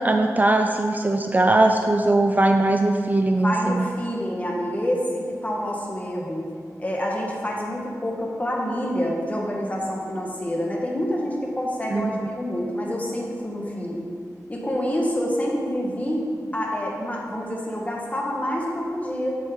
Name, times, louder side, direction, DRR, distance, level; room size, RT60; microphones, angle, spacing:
voice 1, 0.0-3.8 11.9-12.3, right 2 dB, 30° right, 4 dB, 0.4 m, -20 dB
voice 2, 3.4-6.4 6.8-14.1 14.5-16.3 16.5-19.4, equal, 25° left, -2 dB, 1.5 m, -27 dB
7.9 x 7.0 x 3.8 m, 2.2 s
wide cardioid pair, 85°, 6 cm